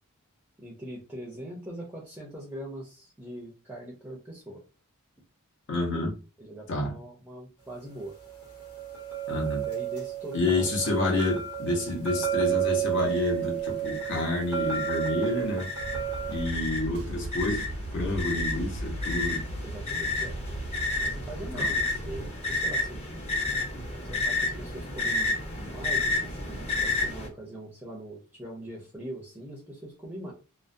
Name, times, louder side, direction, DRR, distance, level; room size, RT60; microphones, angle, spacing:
voice 1, 0.6-4.6 6.4-8.2 9.7-10.8 16.8-17.2 19.6-20.4 21.0-23.0 24.0-30.3, right 1 dB, 10° right, 0.5 m, -42 dB
voice 2, 5.7-6.2 6.7-6.9 9.3-9.7 10.3-15.7 16.3-19.4 21.5-21.7, left 2 dB, 55° left, 0.8 m, -29 dB
sound 1, 8.1-16.5, right 10 dB, 80° left, 1.2 m, -31 dB
sound 2, 13.1-13.3 13.8-14.2 14.7-27.3, left 2 dB, 30° left, 0.7 m, -31 dB
sound 3, 15.8-22.3, right 1 dB, 70° right, 0.4 m, -37 dB
2.4 x 2.1 x 2.5 m
head